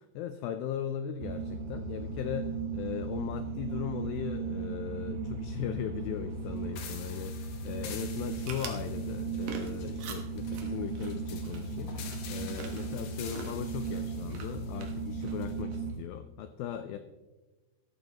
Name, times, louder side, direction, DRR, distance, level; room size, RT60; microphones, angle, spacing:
voice 1, 0.0-17.0, left 9 dB, 85° left, 9 dB, 2.0 m, -38 dB
sound 1, 1.2-15.9, right 4 dB, 90° right, 3.5 m, -36 dB
sound 2, 6.8-15.6, left 7 dB, 65° left, 1.9 m, -48 dB
sound 3, 8.3-16.0, right 5 dB, 65° right, 2.6 m, -47 dB
14.5 x 13.5 x 3.0 m, 1.2 s
omnidirectional pair, 4.8 m